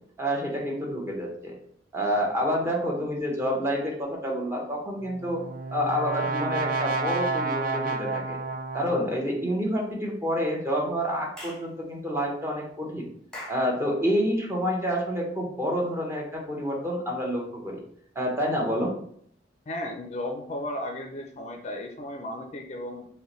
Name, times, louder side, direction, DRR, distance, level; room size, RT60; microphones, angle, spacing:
voice 1, 0.2-1.6 1.9-5.4 5.7-8.4 8.7-13.1 13.5-17.8 18.1-18.9, equal, 15° right, -1 dB, 0.8 m, -28 dB
Brass instrument, 5.0-9.2, right 3 dB, 50° right, 0.4 m, -30 dB
Clapping / Chirp tweet, 11.4-11.7 13.3-13.7, left 1 dB, 5° left, 1.1 m, -40 dB
voice 2, 19.7-23.1, left 1 dB, 40° left, 3 dB, 0.5 m, -35 dB
5.2 x 2.2 x 3.1 m, 0.65 s
head